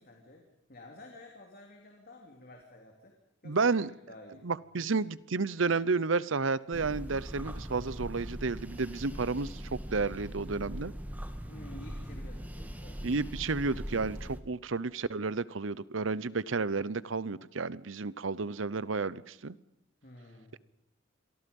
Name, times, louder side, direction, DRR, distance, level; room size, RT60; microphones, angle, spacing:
voice 1, 0.0-3.1 3.4-3.7 4.1-4.4 4.8-4.9 11.4-13.0 20.0-20.6, left 1 dB, 50° left, 1 dB, 3.1 m, -51 dB
voice 2, 3.4-3.9 4.4-10.9 13.0-19.5, right 4 dB, 85° right, 19 dB, 0.8 m, -31 dB
sound 1, 6.7-14.4, equal, 10° right, 1.5 m, -41 dB
28.0 x 23.5 x 5.4 m, 0.79 s
head